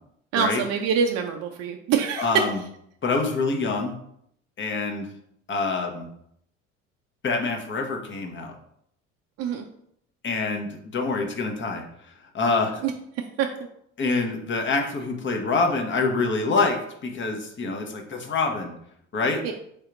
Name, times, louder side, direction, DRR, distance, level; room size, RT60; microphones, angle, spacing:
voice 1, 0.3-2.4 9.4-9.6 12.8-12.9 13.4-13.5 19.4-19.5, right 7 dB, 45° right, 4 dB, 0.5 m, -24 dB
voice 2, 2.2-2.6 3.0-3.9 4.6-5.1 5.5-6.1 7.2-8.5 10.2-11.8 12.3-12.8 14.0-18.7 19.1-19.4, left 3 dB, 30° left, 3 dB, 0.8 m, -26 dB
3.4 x 2.8 x 3.8 m, 0.72 s
hypercardioid pair, 60°, 37 cm